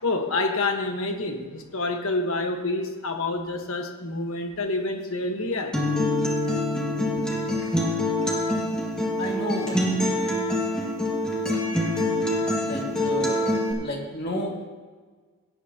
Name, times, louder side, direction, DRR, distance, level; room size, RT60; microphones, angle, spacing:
voice 1, 0.0-5.8, left 2 dB, 75° left, 4 dB, 1.3 m, -28 dB
Acoustic guitar, 5.7-13.7, left 1 dB, 5° left, 1.9 m, -25 dB
voice 2, 9.2-10.2 12.6-14.7, left 1 dB, 50° left, -1 dB, 2.2 m, -32 dB
17.5 x 10.0 x 2.9 m, 1.4 s
head